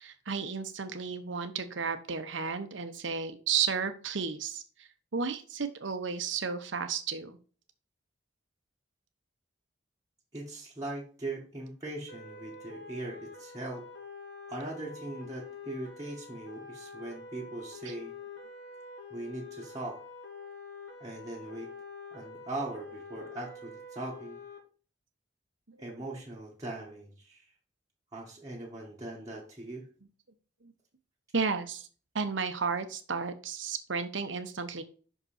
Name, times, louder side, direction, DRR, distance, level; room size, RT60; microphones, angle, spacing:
voice 1, 0.0-4.6 5.1-7.4 25.8-25.9 31.3-31.9 32.1-34.8, right 5 dB, 85° right, 9 dB, 1.0 m, -33 dB
voice 2, 10.3-13.9 14.5-18.1 19.1-20.0 21.0-21.7 22.1-24.4 25.8-27.4 28.1-29.9, right 2 dB, 20° right, -5 dB, 1.5 m, -40 dB
sound 1, 12.1-24.6, left 4 dB, 75° left, 2.1 m, -46 dB
6.1 x 5.5 x 4.3 m, 0.39 s
head